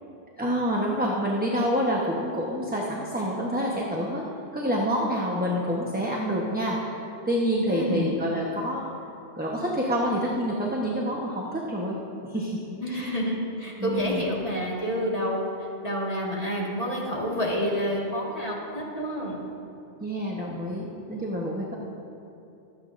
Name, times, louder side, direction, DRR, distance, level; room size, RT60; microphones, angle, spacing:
voice 1, 0.4-4.2 4.5-8.9 9.4-13.1 13.8-14.2 20.0-21.7, equal, 10° right, -3 dB, 0.9 m, -28 dB
voice 2, 7.7-8.1 12.8-15.5 15.8-19.4, equal, 35° left, -4 dB, 1.8 m, -28 dB
22.5 x 8.3 x 2.5 m, 2.8 s
omnidirectional pair, 1.2 m